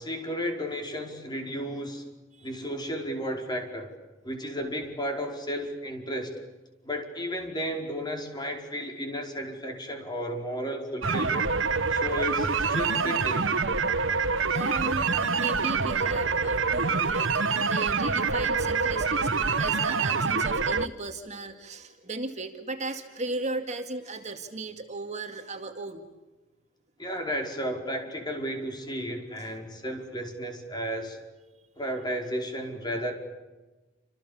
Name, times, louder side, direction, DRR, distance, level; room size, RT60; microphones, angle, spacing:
voice 1, 0.0-2.0 2.4-3.9 4.2-6.3 6.8-11.5 11.9-13.5 27.0-31.2 31.8-33.1, equal, 25° left, 3 dB, 5.1 m, -33 dB
sound 1, 11.0-20.9, right 4 dB, 85° right, 1.2 m, -26 dB
voice 2, 14.4-26.1 29.4-29.5, right 2 dB, 40° right, 5 dB, 2.1 m, -36 dB
29.0 x 27.5 x 7.2 m, 1.2 s
head